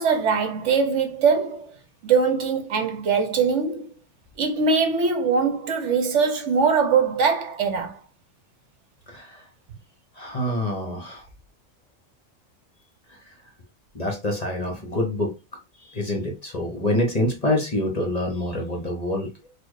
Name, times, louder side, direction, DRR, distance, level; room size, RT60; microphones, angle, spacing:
voice 1, 0.0-1.7 2.0-3.9 4.4-8.0, right 5 dB, 65° right, 1.0 m, -22 dB
voice 2, 9.1-9.4 10.2-11.2 13.9-15.3 15.9-19.3, left 1 dB, 35° left, 1.0 m, -26 dB
4.3 x 2.5 x 4.7 m
omnidirectional pair, 1.4 m